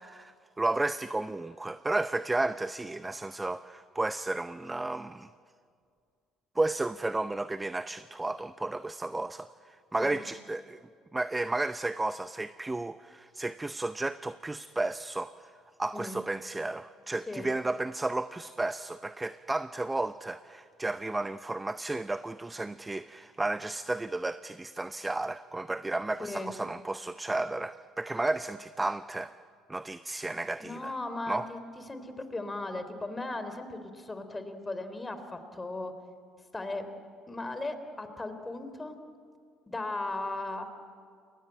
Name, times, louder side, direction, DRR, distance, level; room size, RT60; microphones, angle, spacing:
voice 1, 0.0-5.3 6.6-10.8 11.1-15.5 15.8-29.3 29.7-30.9 31.3-31.5, right 2 dB, 15° right, 14 dB, 0.7 m, -33 dB
voice 2, 26.2-26.5 30.6-31.6 31.9-35.9 36.5-36.9 37.3-38.9 39.7-40.6, left 2 dB, 20° left, 9 dB, 3.6 m, -37 dB
29.5 x 21.0 x 9.0 m, 2.2 s
figure-of-eight pair, 55°, 0 cm